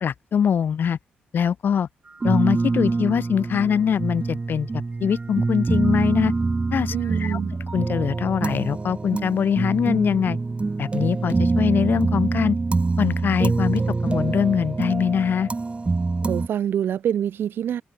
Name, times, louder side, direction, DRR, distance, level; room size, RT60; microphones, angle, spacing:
voice 1, 0.0-1.0 1.3-1.9 2.2-6.3 6.7-6.9 7.2-7.4 7.7-10.4 10.8-12.6 13.0-15.5, left 7 dB, 60° left, 0.5 m, -23 dB
sound 1, 2.2-16.5, right 3 dB, 30° right, 1.2 m, -25 dB
voice 2, 6.9-7.6 16.2-17.8, right 9 dB, 70° right, 1.0 m, -25 dB
open air
supercardioid pair, 55°, 4 cm